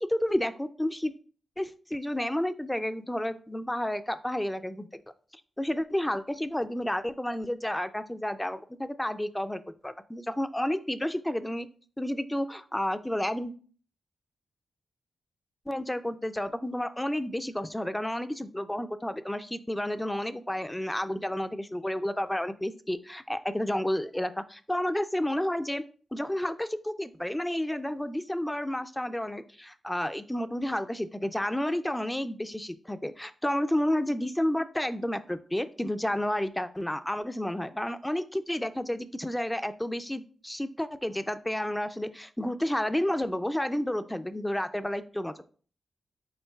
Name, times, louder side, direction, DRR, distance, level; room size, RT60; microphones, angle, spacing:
voice 1, 0.1-1.1 1.6-4.9 5.6-11.7 12.0-13.5 15.7-25.8 26.1-45.4, left 1 dB, 10° left, 11 dB, 0.3 m, -31 dB
5.4 x 3.7 x 2.3 m, 0.42 s
cardioid pair, 60°, 0 cm